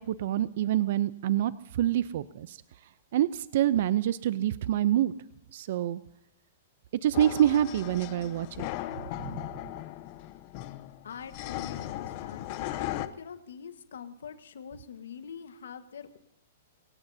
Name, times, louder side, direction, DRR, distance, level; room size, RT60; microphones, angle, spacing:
voice 1, 0.0-2.6 3.1-5.1 5.5-6.0 7.0-8.7 9.0-9.4, right 12 dB, 60° right, 16 dB, 0.5 m, -27 dB
sound 1, 7.1-13.1, left 15 dB, 40° left, 0.8 m, -37 dB
voice 2, 11.0-16.2, left 7 dB, 90° left, 9 dB, 1.4 m, -44 dB
23.5 x 17.5 x 2.8 m, 0.86 s
hypercardioid pair, 150°, 0 cm